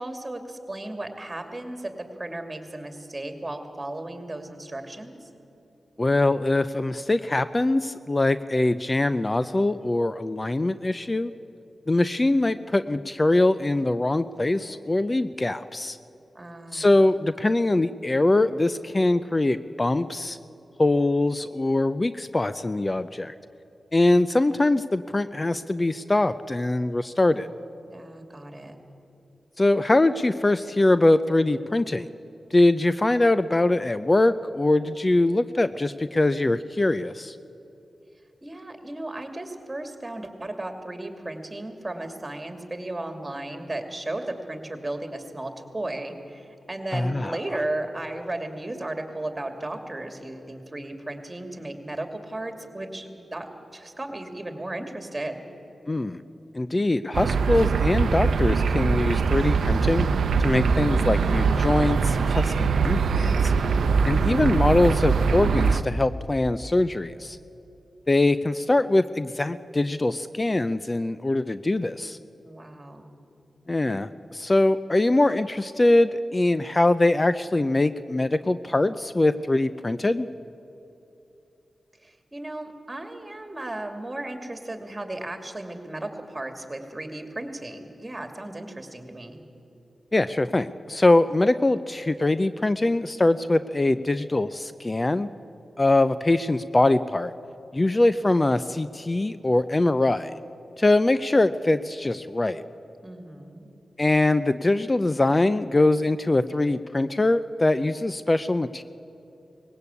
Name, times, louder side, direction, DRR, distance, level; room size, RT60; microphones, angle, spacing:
voice 1, 0.0-5.3 16.3-16.9 27.9-28.8 38.4-55.4 72.4-73.1 82.0-89.4 103.0-103.7, right 1 dB, 25° right, 5 dB, 2.6 m, -35 dB
voice 2, 6.0-11.3 11.9-16.0 16.7-20.4 20.8-23.3 23.9-27.5 29.6-32.1 32.5-37.4 46.9-47.4 55.9-56.2 56.5-60.1 60.4-63.5 64.1-67.4 68.1-72.2 73.7-80.3 90.1-95.3 95.8-97.3 97.7-100.3 100.8-102.6 104.0-108.8, left 2 dB, 35° left, 13 dB, 0.5 m, -22 dB
sound 1, 57.1-65.8, right 5 dB, 80° right, 0.6 m, -22 dB
19.5 x 16.5 x 8.4 m, 2.9 s
cardioid pair, 40°, 0 cm